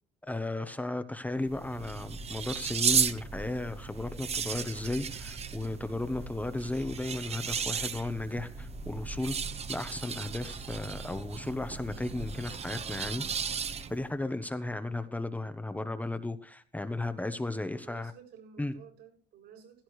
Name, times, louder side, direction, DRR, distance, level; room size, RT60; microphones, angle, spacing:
voice 1, 0.3-9.4 9.7-13.6 13.9-18.1 18.6-18.7, left 2 dB, 10° left, 1.0 m, -35 dB
sound 1, 1.4-14.1, right 6 dB, 40° right, 1.2 m, -35 dB
voice 2, 17.6-19.8, right 8 dB, 80° right, 7.9 m, -53 dB
16.5 x 14.5 x 3.2 m
cardioid pair, 110°, 17 cm